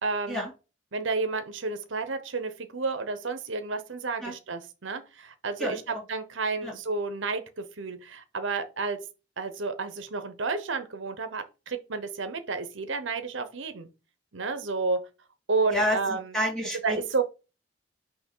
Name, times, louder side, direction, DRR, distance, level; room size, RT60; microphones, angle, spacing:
voice 1, 0.0-0.4 0.9-9.0 9.4-13.9 14.3-15.1 15.5-16.3 16.8-17.2, right 4 dB, 80° right, 0.9 m, -31 dB
voice 2, 5.6-6.0 6.6-6.7 15.7-17.2, equal, 5° left, 2.1 m, -30 dB
6.1 x 2.8 x 5.4 m
head